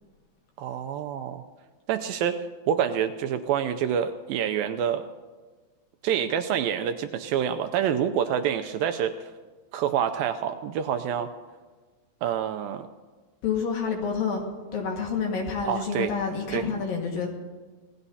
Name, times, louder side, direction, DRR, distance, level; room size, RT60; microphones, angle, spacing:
voice 1, 0.6-1.4 1.9-2.4 2.7-5.0 6.0-9.3 9.7-11.3 12.2-12.9 15.7-16.1 16.5-16.7, right 9 dB, 85° right, 8 dB, 2.1 m, -27 dB
voice 2, 13.4-17.3, left 5 dB, 65° left, 0 dB, 3.3 m, -28 dB
26.5 x 18.5 x 2.8 m, 1.3 s
omnidirectional pair, 4.6 m